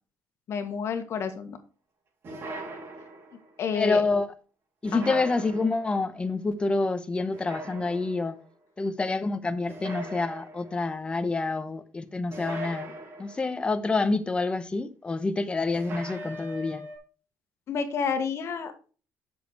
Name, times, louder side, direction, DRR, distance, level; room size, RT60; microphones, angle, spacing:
voice 1, 0.5-1.6 3.6-4.0 4.9-5.2 17.7-18.7, left 6 dB, 55° left, 1.6 m, -29 dB
sound 1, 2.2-3.5 4.8-6.0 7.3-8.3 9.7-10.8 12.3-13.6 15.7-17.0, right 1 dB, 50° right, 3.6 m, -40 dB
voice 2, 3.7-4.3 4.8-8.4 8.8-12.9 13.2-16.8, left 3 dB, 20° left, 0.9 m, -27 dB
7.9 x 6.5 x 4.8 m
cardioid pair, 125°, 5 cm